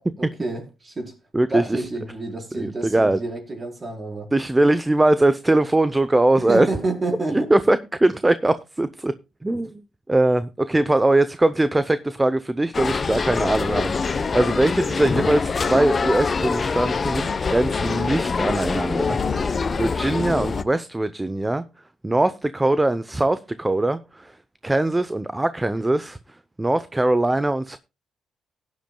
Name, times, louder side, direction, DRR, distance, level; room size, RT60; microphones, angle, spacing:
voice 1, 0.2-1.2 1.5-4.3 6.3-7.5, right 2 dB, 30° right, 4.4 m, -29 dB
voice 2, 1.3-1.6 2.5-3.2 4.3-6.7 7.3-9.1 9.4-9.8 10.1-21.6 22.0-24.4 24.6-27.8, right 2 dB, 15° right, 0.6 m, -21 dB
sound 1, 12.7-20.6, left 4 dB, 35° left, 0.8 m, -24 dB
16.5 x 10.5 x 2.2 m
cardioid pair, 90°, 0 cm